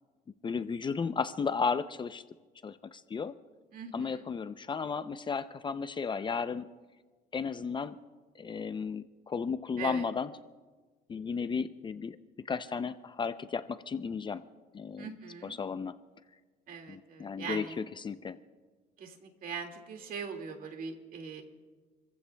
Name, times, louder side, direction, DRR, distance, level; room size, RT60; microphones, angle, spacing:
voice 1, 0.4-2.2 2.6-3.3 3.9-6.6 7.3-8.0 8.4-10.3 11.1-12.2 12.5-14.4 14.7-15.1 15.4-15.9 16.9-18.4, left 5 dB, 30° left, 12 dB, 0.5 m, -34 dB
voice 2, 3.7-4.3 9.8-10.0 15.0-15.6 16.7-17.8 19.0-21.4, right 5 dB, 55° right, 4 dB, 2.1 m, -41 dB
28.5 x 15.0 x 2.3 m, 1.4 s
cardioid pair, 110°, 17 cm